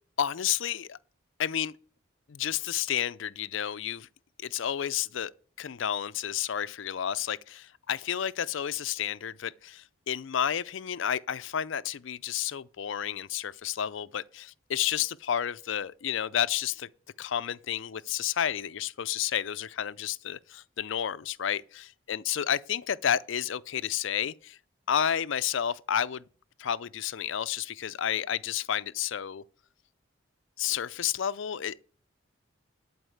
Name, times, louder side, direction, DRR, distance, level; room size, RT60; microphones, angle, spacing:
voice 1, 0.2-1.0 1.4-1.7 2.3-4.1 4.4-5.3 5.6-16.9 17.2-24.6 24.9-26.2 26.6-29.4 30.6-31.8, left 9 dB, 70° left, 0.4 m, -31 dB
11.5 x 4.7 x 7.8 m
head